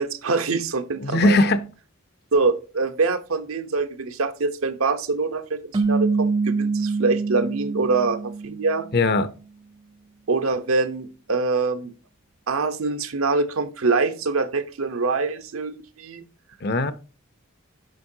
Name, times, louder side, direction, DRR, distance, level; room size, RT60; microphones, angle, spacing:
voice 1, 0.0-1.4 2.3-8.9 10.3-11.9 12.5-16.2, right 3 dB, 80° right, 0.8 m, -24 dB
voice 2, 1.0-1.7 8.9-9.3 16.6-16.9, left 2 dB, 50° left, 0.7 m, -19 dB
sound 1, 5.7-9.1, right 4 dB, 20° right, 0.4 m, -25 dB
9.1 x 6.0 x 2.7 m
head